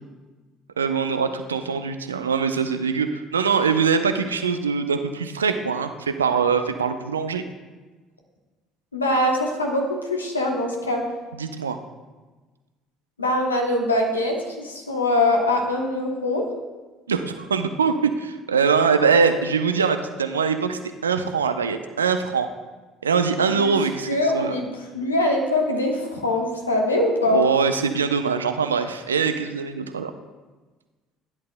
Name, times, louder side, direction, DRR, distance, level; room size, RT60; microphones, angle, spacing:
voice 1, 0.8-7.4 11.4-11.8 17.1-22.5 23.0-24.6 27.3-30.1, right 5 dB, 80° right, 9 dB, 0.5 m, -23 dB
voice 2, 8.9-11.0 13.2-16.4 23.5-23.7 24.1-24.7 24.9-27.4, left 1 dB, 85° left, 1 dB, 1.1 m, -23 dB
15.0 x 10.5 x 2.2 m, 1.3 s
figure-of-eight pair, 55°, 0 cm